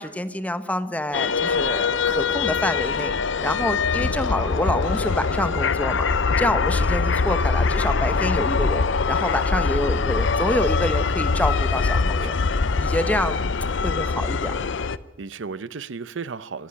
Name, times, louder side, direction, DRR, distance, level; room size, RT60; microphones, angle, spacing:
voice 1, 0.0-6.0 6.4-12.4 12.8-13.4 13.8-14.5, left 1 dB, 10° left, 11 dB, 1.0 m, -27 dB
sound 1, 1.1-15.0, left 4 dB, 70° left, 0.6 m, -23 dB
voice 2, 4.0-4.5 7.2-7.3 12.0-12.3 13.4-13.5 15.2-16.7, right 5 dB, 80° right, 17 dB, 0.7 m, -36 dB
sound 2, 7.8-14.9, left 3 dB, 40° left, 1.3 m, -42 dB
26.0 x 10.5 x 9.8 m, 1.1 s
head